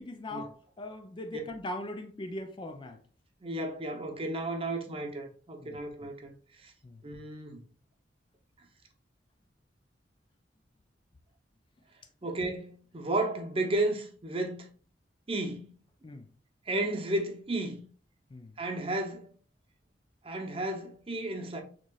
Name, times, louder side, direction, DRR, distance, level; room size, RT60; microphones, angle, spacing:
voice 1, 0.0-3.0 5.6-5.8 6.8-7.0 16.0-16.3 18.3-18.5, left 1 dB, 25° left, 0.4 m, -40 dB
voice 2, 3.4-6.7 7.0-7.6 12.2-14.7 15.3-15.7 16.7-17.9 18.6-19.3 20.2-21.6, right 2 dB, 30° right, 0.7 m, -33 dB
6.6 x 3.0 x 2.3 m
head